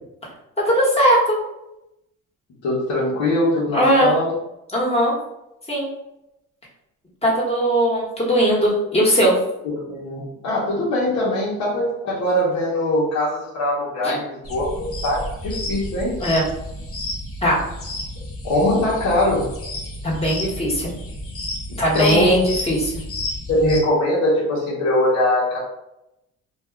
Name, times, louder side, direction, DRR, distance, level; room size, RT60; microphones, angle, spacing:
voice 1, 0.7-1.4 3.7-4.1 4.7-5.1 5.7-5.9 7.2-9.4 14.0-14.1 16.2-16.5 17.4-17.6 20.0-20.9 21.8-22.9, equal, 20° left, -4 dB, 1.3 m, -18 dB
voice 2, 2.6-4.3 9.9-16.1 18.4-19.5 21.9-22.3 23.5-25.6, left 1 dB, 70° left, -8 dB, 1.0 m, -21 dB
sound 1, 14.4-23.8, left 1 dB, 50° left, 0.8 m, -31 dB
2.6 x 2.3 x 3.4 m, 0.87 s
cardioid pair, 90°, 30 cm